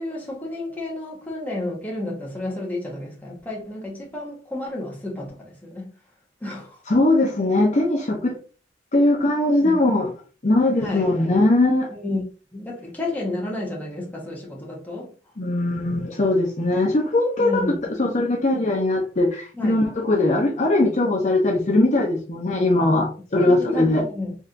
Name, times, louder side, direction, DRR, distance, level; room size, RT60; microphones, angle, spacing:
voice 1, 0.0-5.9 6.4-6.8 9.6-9.8 10.8-11.1 11.9-15.1 17.4-17.9 19.5-19.8 23.4-24.4, left 2 dB, 10° left, 1.2 m, -31 dB
voice 2, 6.9-8.3 8.9-10.1 10.4-11.9 15.4-17.6 18.0-24.0, left 2 dB, 40° left, 0.7 m, -20 dB
4.2 x 3.4 x 2.5 m
head